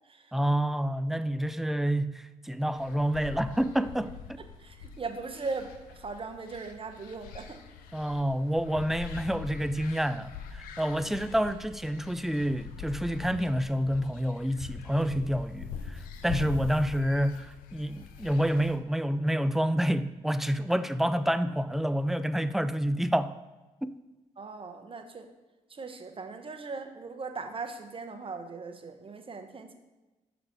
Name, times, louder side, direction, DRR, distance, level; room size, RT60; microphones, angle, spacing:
voice 1, 0.3-4.1 7.9-23.4 23.8-23.9, equal, ahead, 0.3 m, -28 dB
sound 1, 2.7-18.8, left 6 dB, 85° left, 0.5 m, -43 dB
voice 2, 4.6-5.7 6.0-7.6 11.1-11.2 24.4-25.3 25.7-29.7, right 4 dB, 40° right, 0.8 m, -39 dB
6.2 x 4.0 x 4.6 m
supercardioid pair, 50°, 14 cm